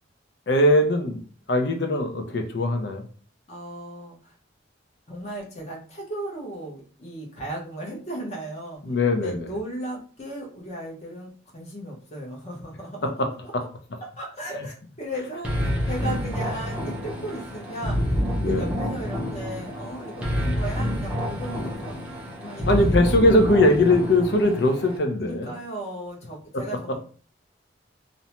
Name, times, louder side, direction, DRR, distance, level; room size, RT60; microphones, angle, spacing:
voice 1, 0.5-1.2 1.5-3.0 8.8-9.5 13.0-13.6 18.4-18.7 22.7-25.5 26.5-26.6, left 1 dB, 65° left, 5 dB, 0.6 m, -21 dB
voice 2, 3.5-4.3 5.1-8.8 9.2-13.2 14.2-18.2 18.4-22.0 22.4-23.0 25.2-27.0, right 1 dB, 35° left, -1 dB, 0.9 m, -36 dB
sound 1, 15.4-25.0, equal, 5° right, 0.6 m, -28 dB
2.6 x 2.1 x 2.8 m, 0.41 s
head